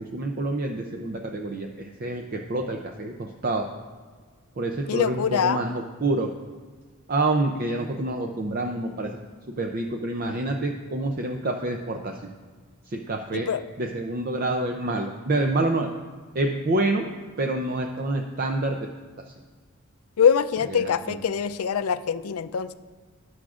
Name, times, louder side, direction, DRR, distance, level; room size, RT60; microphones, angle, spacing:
voice 1, 0.0-3.7 4.6-6.3 7.1-9.2 9.6-12.2 12.9-13.5 13.8-15.9 16.3-17.1 17.4-18.8 19.3-19.4 20.7-21.2, right 2 dB, 45° right, 3 dB, 0.5 m, -27 dB
voice 2, 4.9-5.6 13.3-13.6 20.2-22.7, left 7 dB, 85° left, 13 dB, 0.4 m, -23 dB
17.5 x 6.3 x 2.5 m, 1.5 s
head